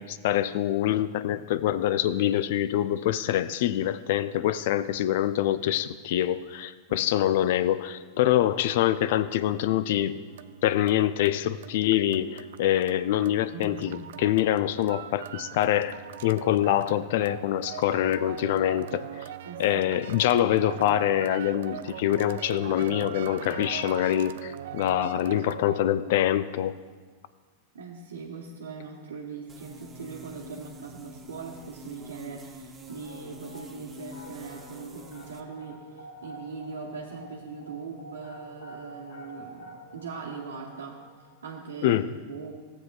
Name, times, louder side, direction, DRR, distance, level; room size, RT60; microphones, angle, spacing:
voice 1, 0.0-10.2 10.6-19.1 19.6-26.8 41.8-42.1, left 12 dB, 65° left, 15 dB, 0.4 m, -25 dB
sound 1, 8.5-25.9, right 11 dB, 70° right, 0.3 m, -41 dB
voice 2, 13.5-14.0 19.4-19.9 27.7-41.0 41.4-42.0 42.3-42.5, right 5 dB, 85° right, -3 dB, 1.0 m, -40 dB
sound 2, 29.5-35.4, equal, 20° right, 0.8 m, -46 dB
sound 3, 32.8-41.8, right 1 dB, 80° left, 2.3 m, -48 dB
14.5 x 7.9 x 2.3 m, 1.4 s
hypercardioid pair, 105°, 0 cm